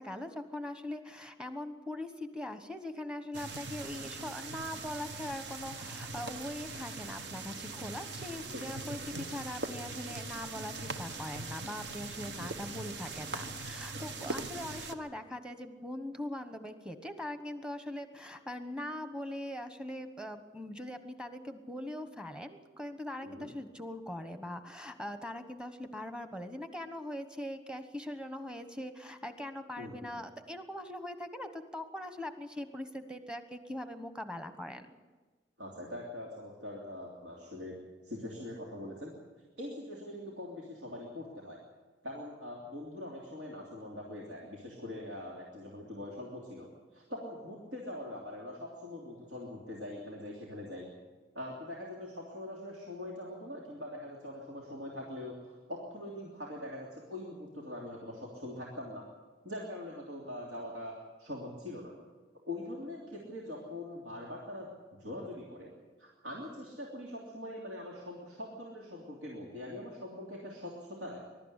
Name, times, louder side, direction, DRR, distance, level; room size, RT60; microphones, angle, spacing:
voice 1, 0.0-35.0, left 1 dB, 5° right, 9 dB, 1.2 m, -41 dB
sound 1, 3.3-14.9, right 3 dB, 65° right, 1.2 m, -41 dB
voice 2, 29.8-30.1 35.6-37.8 38.0-39.1 39.6-41.6 42.0-50.9 51.3-59.1 59.4-61.9 62.5-65.7 66.0-71.3, left 1 dB, 85° right, -3 dB, 3.1 m, -43 dB
21.5 x 12.5 x 9.9 m, 1.4 s
head